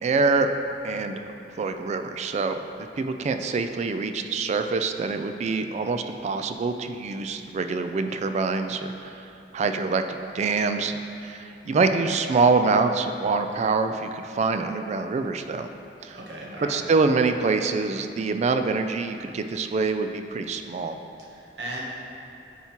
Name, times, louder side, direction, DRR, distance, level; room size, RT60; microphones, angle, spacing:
voice 1, 0.0-0.5 0.8-1.2 1.6-9.2 9.5-15.7 16.0-16.2 16.7-21.0, right 4 dB, 40° right, 7 dB, 0.3 m, -25 dB
voice 2, 16.1-16.8 21.2-21.8, right 1 dB, 70° right, -4 dB, 1.1 m, -36 dB
9.2 x 4.3 x 2.9 m, 2.7 s
head